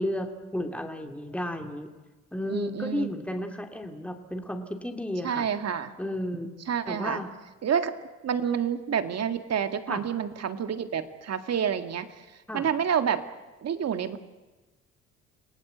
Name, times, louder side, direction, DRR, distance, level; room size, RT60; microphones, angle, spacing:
voice 1, 0.0-1.9 2.3-5.4 6.0-6.5 6.9-7.3 9.9-10.0 12.5-12.6, left 1 dB, 5° left, 4 dB, 2.9 m, -33 dB
voice 2, 2.5-3.1 5.2-5.9 6.7-7.2 7.6-7.9 8.2-12.1 12.5-13.2 13.6-14.2, right 8 dB, 55° right, 9 dB, 2.0 m, -28 dB
28.5 x 18.0 x 8.1 m, 1.2 s
cardioid pair, 90°, 30 cm